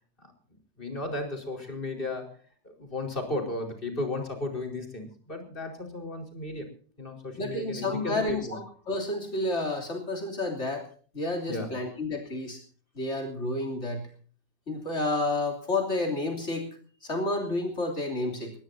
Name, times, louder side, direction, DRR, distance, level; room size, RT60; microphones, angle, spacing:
voice 1, 0.8-2.4 2.6-6.7 7.0-8.5 11.5-11.7, left 2 dB, 50° left, 4 dB, 4.9 m, -34 dB
voice 2, 7.4-10.9 11.1-12.6 13.0-14.1 14.7-16.7 17.0-18.5, left 2 dB, 85° left, 1 dB, 3.5 m, -30 dB
23.0 x 20.0 x 2.7 m, 0.43 s
omnidirectional pair, 1.2 m